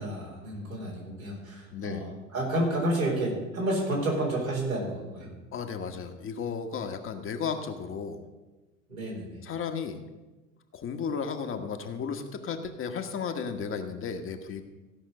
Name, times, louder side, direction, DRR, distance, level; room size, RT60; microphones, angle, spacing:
voice 1, 0.0-5.3 8.9-9.4, right 1 dB, 90° right, -4 dB, 4.2 m, -30 dB
voice 2, 1.7-2.0 5.5-8.2 9.4-10.0 10.7-14.6, left 6 dB, 30° left, 5 dB, 1.3 m, -34 dB
15.5 x 5.7 x 6.5 m, 1.1 s
hypercardioid pair, 80°, 40 cm